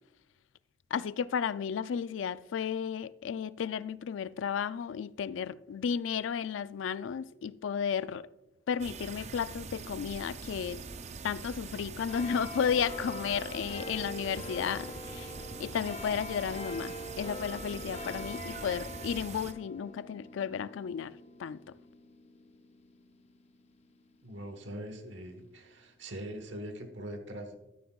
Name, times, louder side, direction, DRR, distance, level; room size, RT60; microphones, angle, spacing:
voice 1, 0.9-8.3 8.7-10.8 11.2-15.3 15.6-21.1 21.4-21.6, left 7 dB, 80° left, 0.4 m, -33 dB
sound 1, 8.8-19.5, right 4 dB, 35° right, 0.5 m, -43 dB
sound 2, 12.1-25.0 25.6-25.7, left 1 dB, 35° left, 0.7 m, -44 dB
voice 2, 24.2-27.6, right 1 dB, 70° right, 1.2 m, -42 dB
13.5 x 9.4 x 2.3 m
head